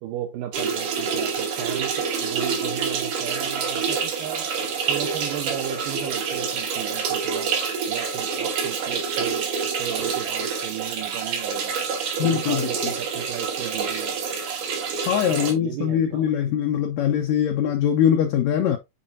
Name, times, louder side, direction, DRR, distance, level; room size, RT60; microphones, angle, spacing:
voice 1, 0.0-4.5 4.9-7.5 7.9-11.8 12.2-14.2 15.1-16.6, right 11 dB, 80° right, 2.5 m, -35 dB
sound 1, 0.5-15.5, right 6 dB, 65° right, 2.8 m, -27 dB
voice 2, 12.2-12.7 15.1-18.8, left 9 dB, 75° left, 1.6 m, -22 dB
8.5 x 4.3 x 2.6 m
omnidirectional pair, 4.0 m